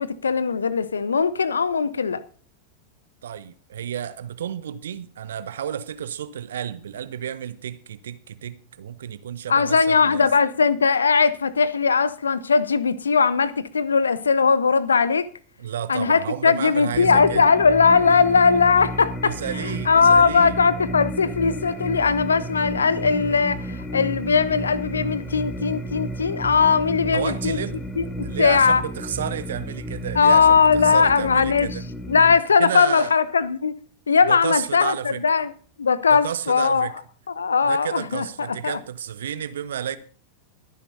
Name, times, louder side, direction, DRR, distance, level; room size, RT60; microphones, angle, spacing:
voice 1, 0.0-2.2 9.5-15.3 15.9-19.4 19.9-27.6 28.0-28.8 30.1-31.7 32.1-33.8 34.1-35.5 35.8-36.9 37.4-38.8, left 5 dB, 70° left, 0.8 m, -19 dB
voice 2, 3.2-10.3 15.6-17.4 19.2-20.6 27.1-27.7 28.2-31.8 32.6-33.1 34.3-35.2 36.1-36.9 37.6-40.0, right 9 dB, 65° right, 0.7 m, -31 dB
sound 1, 16.9-32.3, equal, 20° left, 1.9 m, -32 dB
23.0 x 10.0 x 2.7 m
figure-of-eight pair, 90°, 0 cm